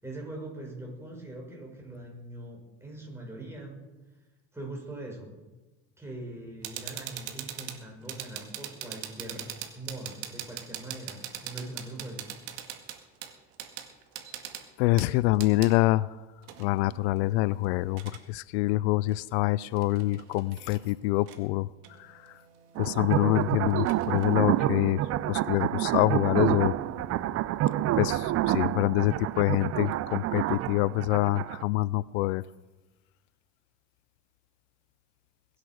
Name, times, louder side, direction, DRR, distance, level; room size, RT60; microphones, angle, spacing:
voice 1, 0.0-3.8 4.5-5.4 6.0-12.3, right 1 dB, 10° right, 6.2 m, -42 dB
sound 1, 6.6-15.7 16.4-18.2 19.1-19.2 19.6-20.9 21.3-21.4 21.8-24.7, right 11 dB, 80° right, 2.1 m, -42 dB
voice 2, 14.8-16.2 16.6-21.7 22.0-22.3 22.8-25.0 25.3-26.7 28.0-32.4, left 18 dB, 80° left, 0.5 m, -26 dB
sound 2, 22.8-31.6, right 14 dB, 50° right, 0.7 m, -28 dB
sound 3, 26.0-29.9, equal, 25° right, 6.9 m, -50 dB
21.5 x 8.3 x 6.3 m
supercardioid pair, 95°, 32 cm